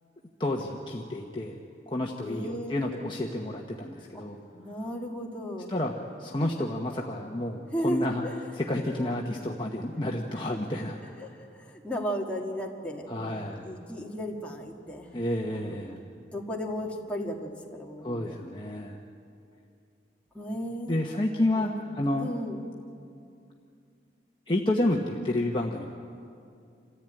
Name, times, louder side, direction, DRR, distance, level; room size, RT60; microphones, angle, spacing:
voice 1, 0.4-1.6 1.9-4.4 5.7-5.9 6.2-8.2 8.5-11.0 13.1-13.6 15.1-16.0 18.0-19.0 20.9-22.3 24.5-25.8, left 1 dB, 25° left, -1 dB, 1.1 m, -30 dB
voice 2, 2.2-2.8 4.1-4.2 4.5-5.7 7.7-8.4 8.9-9.1 10.5-10.6 11.2-15.1 15.5-18.4 20.3-21.0 21.5-22.6, equal, 5° left, -2 dB, 2.0 m, -35 dB
27.5 x 14.5 x 9.1 m, 2.4 s
head